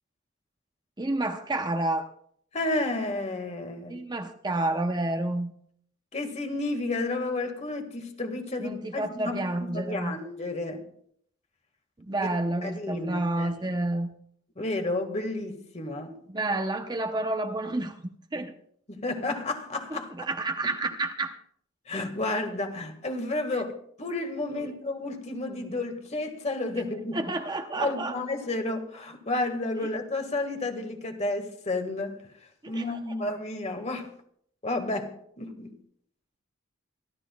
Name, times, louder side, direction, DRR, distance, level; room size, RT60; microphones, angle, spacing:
voice 1, 1.0-2.1 3.9-5.5 8.6-10.2 12.1-14.1 16.3-17.9 18.3-18.5 20.2-21.3 24.6-24.7 27.1-28.1 32.6-32.8, right 2 dB, 20° right, 0.7 m, -29 dB
voice 2, 2.5-4.0 6.1-10.9 12.2-12.3 12.6-13.7 14.5-16.2 18.3-18.4 18.9-20.3 21.9-27.3 27.8-32.2 32.7-34.1 34.6-35.8, left 2 dB, 35° left, 1.7 m, -31 dB
26.5 x 12.5 x 2.3 m
head